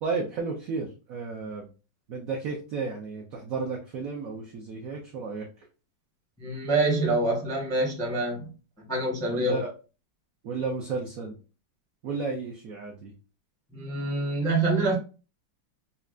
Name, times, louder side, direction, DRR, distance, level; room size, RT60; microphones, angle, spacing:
voice 1, 0.0-1.7 2.1-5.5 9.3-9.7 10.4-11.4 12.0-13.1, right 4 dB, 75° right, 0.8 m, -33 dB
voice 2, 6.4-8.5 8.9-9.6 13.7-15.0, right 2 dB, 5° left, 0.5 m, -26 dB
5.6 x 2.1 x 2.4 m
omnidirectional pair, 2.2 m